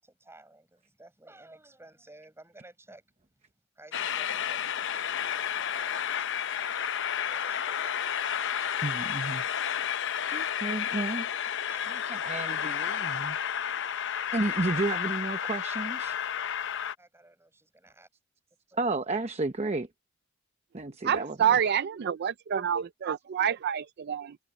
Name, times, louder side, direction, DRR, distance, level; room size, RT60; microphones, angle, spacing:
voice 1, 0.0-3.0 3.8-6.6 7.0-8.6 11.7-11.9 17.0-18.1 18.7-18.8, right 2 dB, 10° right, 7.4 m, -55 dB
Train, 3.9-16.9, left 9 dB, 60° left, 0.7 m, -31 dB
voice 2, 8.8-9.4 10.3-11.3 12.1-13.4 14.3-16.2 18.8-19.9 20.7-21.5, right 2 dB, 30° right, 0.9 m, -32 dB
voice 3, 21.0-24.4, right 8 dB, 50° right, 0.4 m, -27 dB
head